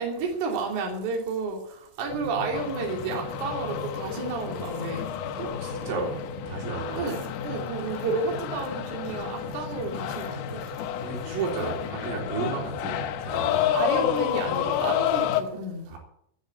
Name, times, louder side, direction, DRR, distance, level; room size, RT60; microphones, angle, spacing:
voice 1, 0.0-5.1 6.9-10.7 13.7-15.9, right 4 dB, 45° right, 3.9 m, -31 dB
sound 1, 2.1-15.4, left 3 dB, 50° left, 3.1 m, -38 dB
sound 2, 2.5-15.4, left 12 dB, 85° left, 3.6 m, -31 dB
voice 2, 5.4-6.2 6.5-7.1 11.0-13.7 15.9-16.0, right 5 dB, 85° right, 6.3 m, -33 dB
13.0 x 10.0 x 9.1 m
omnidirectional pair, 5.6 m